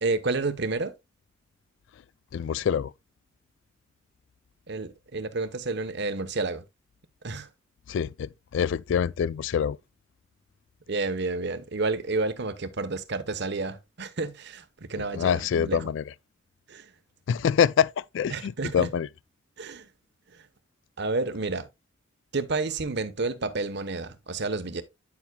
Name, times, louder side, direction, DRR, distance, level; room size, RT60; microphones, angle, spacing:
voice 1, 0.0-0.9 4.7-6.6 7.2-7.5 10.9-15.9 16.7-16.9 18.3-18.9 19.6-19.9 21.0-21.7 22.3-24.8, right 3 dB, 60° right, 1.0 m, -30 dB
voice 2, 2.3-2.9 7.9-9.8 15.1-16.0 17.3-19.1, left 7 dB, 65° left, 0.3 m, -25 dB
9.6 x 7.1 x 2.2 m
head